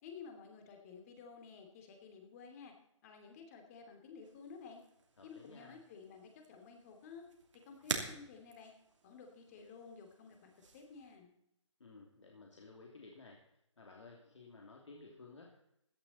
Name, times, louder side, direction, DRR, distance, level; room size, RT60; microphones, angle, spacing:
voice 1, 0.0-2.7 3.0-4.8 5.2-7.3 7.5-8.7 9.0-11.3, left 5 dB, 30° left, 4 dB, 2.9 m, -53 dB
sound 1, 4.2-11.2, right 4 dB, 70° right, 2.8 m, -48 dB
voice 2, 5.2-5.8 11.8-13.4 13.8-15.8, left 3 dB, 70° left, 0 dB, 2.9 m, -55 dB
16.0 x 11.5 x 4.2 m, 0.77 s
figure-of-eight pair, 150°, 16 cm